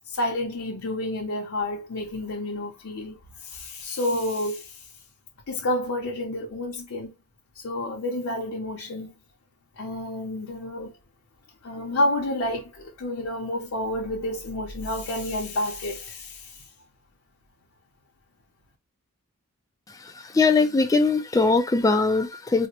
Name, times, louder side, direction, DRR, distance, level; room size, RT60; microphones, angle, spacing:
voice 1, 0.1-4.9 5.5-7.1 7.5-9.2 9.8-10.9 11.6-16.7, left 1 dB, 65° left, 0.6 m, -30 dB
voice 2, 19.9-22.7, left 3 dB, 15° left, 0.3 m, -21 dB
4.0 x 2.1 x 2.9 m
head